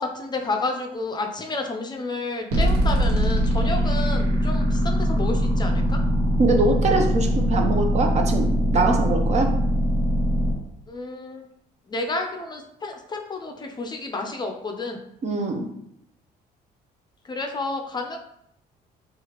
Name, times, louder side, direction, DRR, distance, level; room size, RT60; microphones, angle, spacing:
voice 1, 0.0-6.0 10.9-11.5 11.9-15.0 17.2-18.2, left 2 dB, 25° left, 3 dB, 0.5 m, -30 dB
sound 1, 2.5-10.5, equal, 85° right, 1.3 m, -22 dB
voice 2, 6.4-9.5 15.2-15.7, right 3 dB, 40° right, 3 dB, 0.6 m, -23 dB
4.8 x 2.4 x 2.9 m, 0.76 s
cardioid pair, 110°, 17 cm